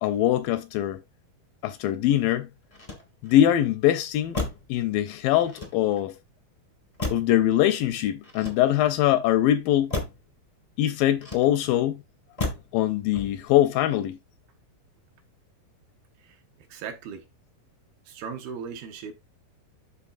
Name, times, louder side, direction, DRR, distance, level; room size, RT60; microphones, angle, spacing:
voice 1, 0.0-1.0 1.6-2.5 3.2-4.4 4.7-6.1 7.1-9.9 10.8-12.0 12.7-14.2, left 12 dB, 80° left, 2.1 m, -22 dB
Motor vehicle (road), 2.7-3.5 4.3-4.8 5.4-6.1 7.0-7.5 8.2-9.0 9.9-10.3 11.2-11.8 12.4-12.8 13.1-13.6, left 2 dB, 30° left, 0.6 m, -34 dB
voice 2, 16.2-17.3 18.1-19.1, right 6 dB, 75° right, 3.0 m, -38 dB
12.5 x 4.2 x 2.5 m
omnidirectional pair, 4.3 m